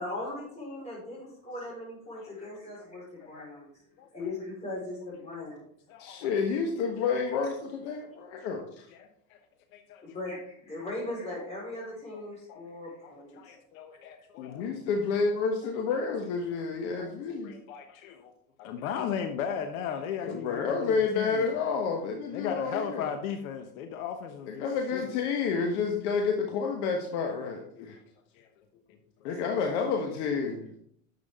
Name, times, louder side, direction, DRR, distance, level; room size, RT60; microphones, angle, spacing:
voice 1, 0.0-3.7 4.1-5.6 10.1-13.5, left 2 dB, 15° left, -4 dB, 4.6 m, -39 dB
voice 2, 2.2-2.5 2.8-2.9 3.4-3.5 4.0-4.1 5.9-6.3 8.9-9.4 9.7-10.4 12.5-12.6 13.0-14.7 17.0-17.1 17.4-18.3 18.6-21.5 22.3-24.7 24.9-25.0 28.4-28.5, left 7 dB, 70° left, 6 dB, 1.2 m, -37 dB
voice 3, 6.0-8.9 14.4-17.5 20.2-23.1 24.5-28.0 29.2-30.8, left 5 dB, 50° left, 2 dB, 1.4 m, -30 dB
10.5 x 7.4 x 3.7 m, 0.68 s
supercardioid pair, 160°, 43 cm